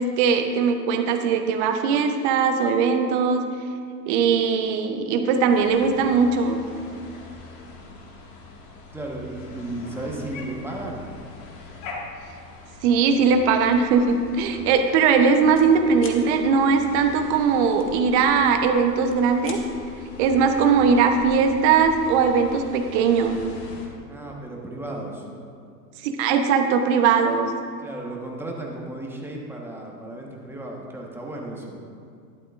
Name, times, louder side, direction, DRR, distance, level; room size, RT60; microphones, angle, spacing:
voice 1, 0.0-3.4 4.1-6.6 12.8-19.6 20.2-23.4 26.0-27.5, right 5 dB, 40° right, 6 dB, 1.1 m, -20 dB
sound 1, 5.5-23.9, left 3 dB, 50° left, 2.1 m, -42 dB
voice 2, 8.9-11.1 24.1-25.2 27.8-31.8, right 1 dB, 5° right, -1 dB, 1.3 m, -34 dB
sound 2, 13.6-13.9 14.3-14.5 14.8-15.7 16.0-16.2 17.8-18.6 18.9-19.6, left 5 dB, 25° left, 1.2 m, -43 dB
12.0 x 11.5 x 2.6 m, 2.3 s
hypercardioid pair, 105°, 50 cm